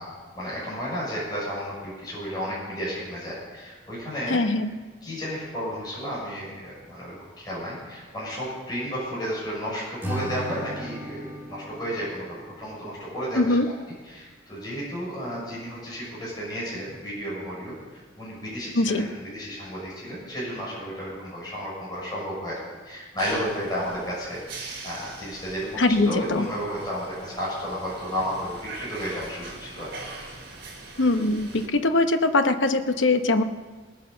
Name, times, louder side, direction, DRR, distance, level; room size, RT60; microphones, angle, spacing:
voice 1, 0.0-4.4 5.0-13.5 14.0-29.9, equal, 20° left, -7 dB, 6.6 m, -33 dB
voice 2, 4.3-4.7 13.3-13.7 18.7-19.1 25.8-26.5 31.0-33.4, left 2 dB, 70° left, 7 dB, 1.0 m, -22 dB
Acoustic guitar / Strum, 10.0-13.3, right 1 dB, 10° right, 2.1 m, -36 dB
sound 1, 23.2-31.7, right 3 dB, 65° right, 4.3 m, -42 dB
19.0 x 9.2 x 6.8 m, 1.4 s
head